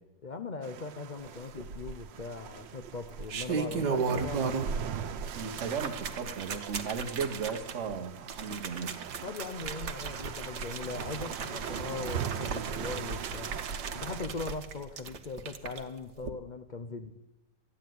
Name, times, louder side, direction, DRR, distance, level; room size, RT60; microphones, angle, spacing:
voice 1, 0.2-4.7 9.2-13.6 13.9-17.1, left 4 dB, 80° left, 0.4 m, -40 dB
sound 1, 0.6-14.2, right 9 dB, 85° right, 1.6 m, -41 dB
sound 2, 1.6-2.2 3.0-4.9 5.2-15.8 16.2-16.3, right 5 dB, 65° right, 1.7 m, -36 dB
voice 2, 5.3-8.9, right 6 dB, 45° right, 1.4 m, -36 dB
14.0 x 10.0 x 9.3 m
omnidirectional pair, 1.9 m